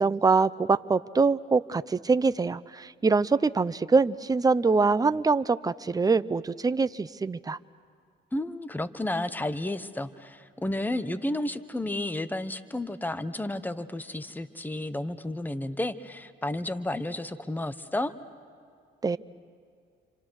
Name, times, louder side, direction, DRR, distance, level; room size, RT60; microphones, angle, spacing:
voice 1, 0.0-7.6 19.0-19.2, right 4 dB, 20° right, 14 dB, 0.6 m, -24 dB
voice 2, 8.3-18.1, left 1 dB, 10° left, 11 dB, 1.1 m, -32 dB
29.0 x 26.5 x 6.4 m, 2.3 s
cardioid pair, 90°, 20 cm